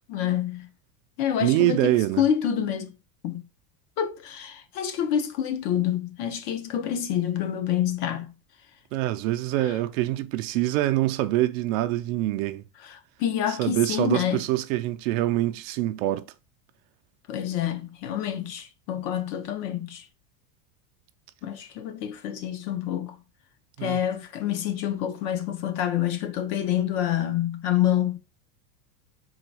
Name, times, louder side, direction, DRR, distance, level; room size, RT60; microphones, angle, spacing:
voice 1, 0.1-0.7 1.2-2.9 3.2-3.4 4.0-8.3 13.2-14.4 17.3-20.0 21.4-23.2 23.8-28.2, left 10 dB, 55° left, 0.8 m, -27 dB
voice 2, 1.4-2.2 8.9-12.6 13.5-16.3 23.8-24.0, right 15 dB, 60° right, 0.5 m, -25 dB
3.9 x 2.3 x 4.6 m
supercardioid pair, 140°, 45 cm